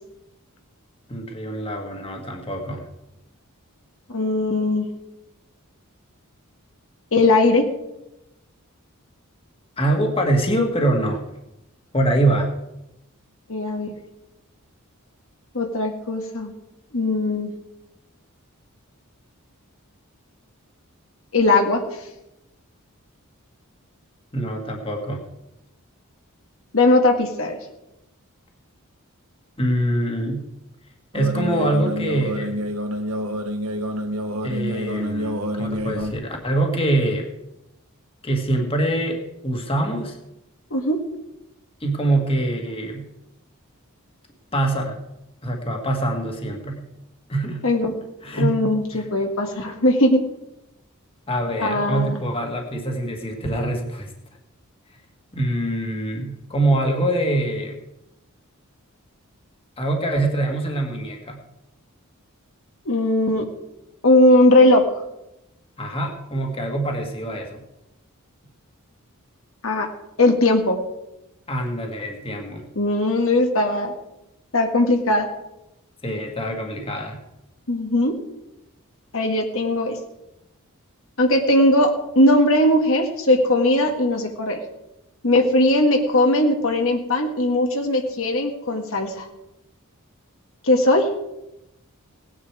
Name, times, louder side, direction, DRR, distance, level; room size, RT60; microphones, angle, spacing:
voice 1, 1.1-2.9 9.8-11.2 11.9-12.5 24.3-25.2 29.6-30.4 31.1-32.6 34.4-37.3 38.2-40.2 41.8-43.0 44.5-45.0 45.4-46.8 47.3-47.6 48.2-48.6 48.9-49.1 51.3-54.1 55.3-57.8 59.8-61.4 65.8-67.6 71.5-72.7 76.0-77.2, right 1 dB, 25° left, 2 dB, 1.9 m, -24 dB
voice 2, 4.1-4.9 7.1-7.6 13.5-13.9 15.5-16.5 16.9-17.5 21.3-21.8 26.7-27.6 40.7-41.0 47.6-47.9 48.3-50.2 51.6-52.2 62.9-63.4 64.0-64.8 69.6-69.9 70.2-70.8 72.8-73.9 74.5-75.3 77.7-78.1 79.1-80.0 81.2-84.6 85.2-89.3 90.6-91.1, left 1 dB, 65° left, 3 dB, 1.7 m, -19 dB
sound 1, 31.1-36.1, equal, 80° right, 1.4 m, -27 dB
18.0 x 10.0 x 4.8 m, 0.91 s
head